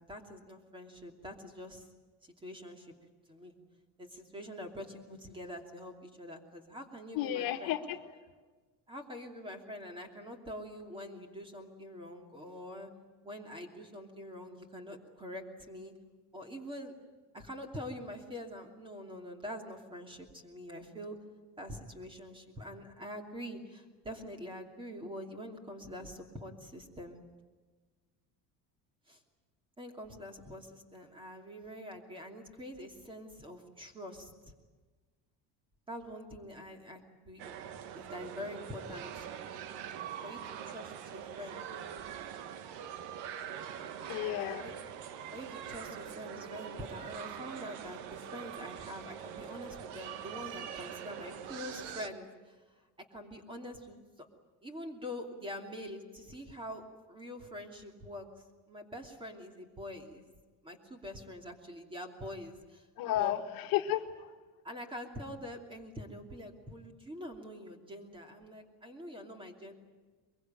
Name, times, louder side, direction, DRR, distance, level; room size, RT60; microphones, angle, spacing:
voice 1, 0.1-1.9 2.2-2.9 3.3-3.5 4.0-7.8 8.9-12.9 13.2-15.9 16.3-16.9 17.3-21.2 21.6-27.2 29.1-29.2 29.8-34.3 35.9-37.0 37.3-39.1 40.2-41.7 44.6-44.7 45.3-54.3 54.6-58.3 58.7-60.3 60.6-62.9 63.2-63.4 64.6-69.7, equal, 15° right, 4 dB, 2.8 m, -45 dB
voice 2, 7.1-8.0 44.1-44.7 63.0-64.3, left 12 dB, 60° left, 6 dB, 1.6 m, -32 dB
sound 1, 37.4-52.1, right 9 dB, 85° right, 1.6 m, -43 dB
23.0 x 23.0 x 9.0 m, 1.4 s
cardioid pair, 160°, 39 cm